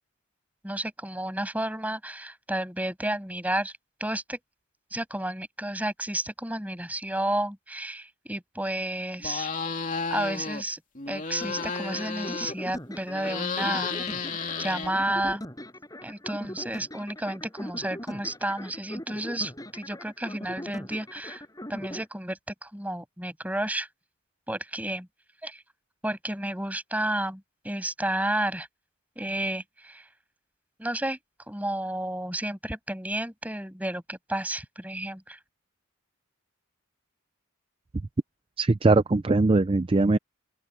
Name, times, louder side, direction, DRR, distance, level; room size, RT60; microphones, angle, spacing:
voice 1, 0.6-3.7 4.0-4.4 4.9-9.5 10.1-10.8 11.1-14.0 14.6-15.4 16.0-21.4 21.7-23.9 24.5-25.1 25.4-25.6 26.0-28.7 29.1-30.1 30.8-31.2 31.5-35.4, right 1 dB, 5° right, 6.7 m, -31 dB
sound 1, 9.2-10.6 10.9-12.8 13.1-15.3, left 4 dB, 40° left, 2.8 m, -32 dB
sound 2, 11.4-22.1, equal, 15° left, 7.0 m, -40 dB
voice 2, 38.6-40.2, right 2 dB, 25° right, 0.4 m, -21 dB
open air
head